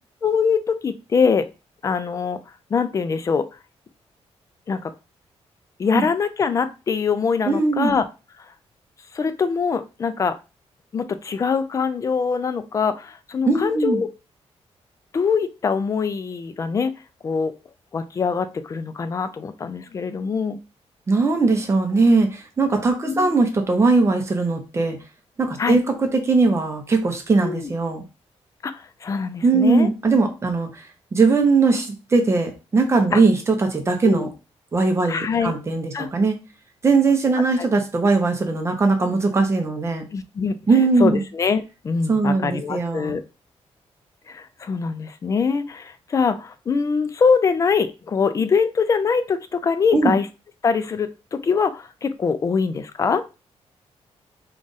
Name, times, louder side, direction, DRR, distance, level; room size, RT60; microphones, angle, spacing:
voice 1, 0.2-1.4 1.8-2.4 2.7-3.5 4.7-4.9 5.8-8.0 9.1-10.3 10.9-14.1 15.1-16.9 17.2-17.5 17.9-20.6 23.0-23.3 25.6-25.8 27.4-27.7 28.6-29.9 33.1-33.2 34.0-34.3 35.1-35.5 35.9-36.1 40.1-43.2 44.3-50.3 50.6-53.2, left 5 dB, 30° left, 10 dB, 0.3 m, -23 dB
voice 2, 7.5-7.9 13.5-14.0 21.1-25.0 25.4-28.0 29.4-30.9 31.1-34.3 34.7-36.4 36.8-40.0 40.7-41.2 42.1-43.2 49.9-50.1, right 3 dB, 25° right, 4 dB, 0.7 m, -20 dB
3.7 x 2.4 x 3.9 m, 0.30 s
wide cardioid pair, 175°, 11 cm